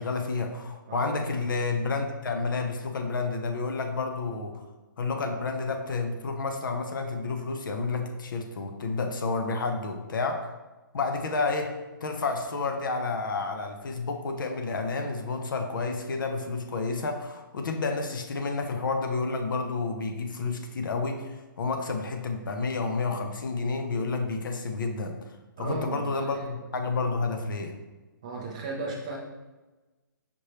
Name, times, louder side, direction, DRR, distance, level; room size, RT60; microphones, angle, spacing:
voice 1, 0.0-4.6 5.0-10.5 10.9-11.7 12.0-25.2 25.6-27.7, left 3 dB, 65° left, 5 dB, 0.6 m, -30 dB
voice 2, 25.6-26.0 26.3-26.5 28.2-29.2, right 3 dB, 20° right, -1 dB, 0.4 m, -35 dB
5.1 x 3.3 x 2.9 m, 1.2 s
hypercardioid pair, 175°, 12 cm